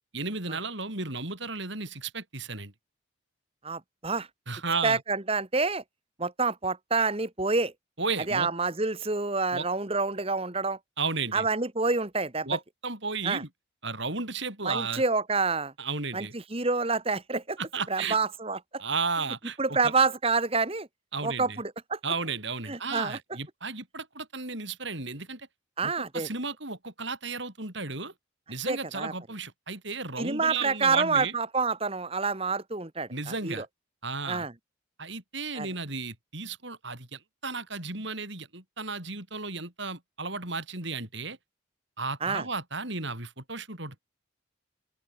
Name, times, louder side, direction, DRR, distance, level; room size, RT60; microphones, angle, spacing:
voice 1, 0.1-2.7 4.5-5.0 8.0-8.5 9.5-9.7 11.0-11.5 12.5-13.5 13.8-15.0 15.8-16.3 17.6-18.2 18.8-19.9 21.1-21.6 22.0-25.5 25.8-28.1 28.5-31.3 33.1-33.7 34.0-34.5 35.0-41.4 42.0-44.0, right 4 dB, 60° right, 5.6 m, -34 dB
voice 2, 3.6-4.3 4.8-5.8 6.2-7.7 8.3-10.8 11.3-12.5 13.2-13.4 14.6-15.7 16.1-17.6 17.9-18.8 19.6-20.9 21.2-22.0 22.7-23.2 25.8-26.3 28.7-29.1 30.2-33.6 34.3-34.5 35.5-35.7 42.2-42.5, right 4 dB, 30° right, 1.4 m, -28 dB
open air
head